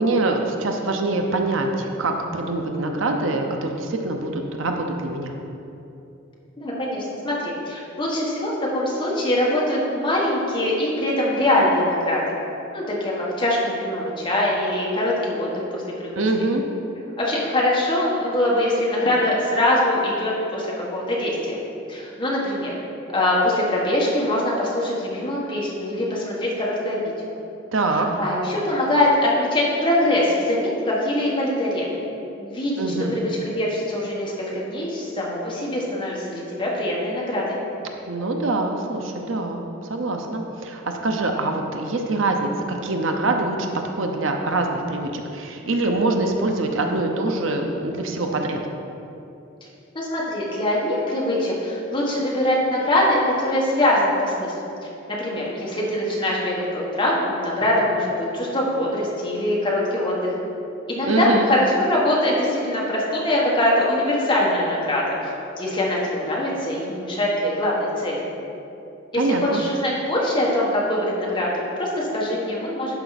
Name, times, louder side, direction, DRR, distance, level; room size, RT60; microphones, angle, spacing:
voice 1, 0.0-5.3 16.2-16.6 27.7-28.1 32.8-33.1 38.1-39.6 39.9-43.7 44.0-48.6 61.1-61.5 69.2-69.6, right 2 dB, 70° right, 3 dB, 0.7 m, -24 dB
voice 2, 6.6-12.2 12.7-16.2 17.2-21.6 21.9-22.7 23.1-27.3 28.2-31.9 32.4-32.8 33.1-37.6 49.9-54.5 55.1-60.3 60.9-65.1 65.6-68.2 69.1-72.9, left 1 dB, 25° left, -4 dB, 1.6 m, -23 dB
11.5 x 5.0 x 4.1 m, 2.8 s
head